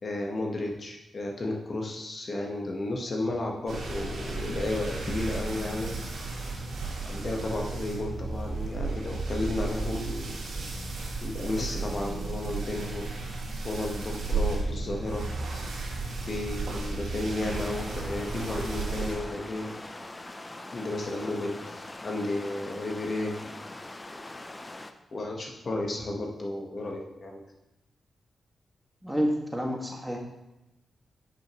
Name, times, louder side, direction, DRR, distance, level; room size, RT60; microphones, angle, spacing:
voice 1, 0.0-5.9 7.0-10.4 11.2-13.1 13.6-15.3 16.2-19.7 20.7-23.4 25.1-27.4, left 2 dB, 50° left, 0 dB, 1.3 m, -33 dB
sound 1, 3.7-19.1, right 3 dB, 75° right, 2.3 m, -34 dB
sound 2, 17.4-24.9, left 2 dB, 25° left, 0.6 m, -42 dB
voice 2, 29.0-30.2, equal, 5° right, 0 dB, 1.9 m, -29 dB
9.9 x 6.0 x 3.1 m, 0.95 s
cardioid pair, 55°, 0 cm